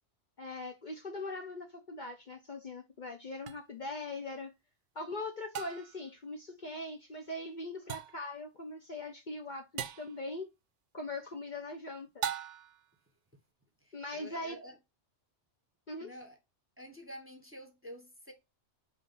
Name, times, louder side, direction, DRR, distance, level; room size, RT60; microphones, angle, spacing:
voice 1, 0.4-4.5 4.9-10.5 10.9-12.2 13.9-14.6 15.9-16.1, left 2 dB, 45° left, 0.8 m, -41 dB
sound 1, 3.5-3.6 5.5-6.0 7.9-8.3 9.8-10.2 12.2-12.8, right 9 dB, 75° right, 0.9 m, -38 dB
voice 2, 13.8-14.8 16.0-16.4 16.8-18.3, equal, 10° right, 1.0 m, -49 dB
5.5 x 3.2 x 5.5 m
omnidirectional pair, 1.2 m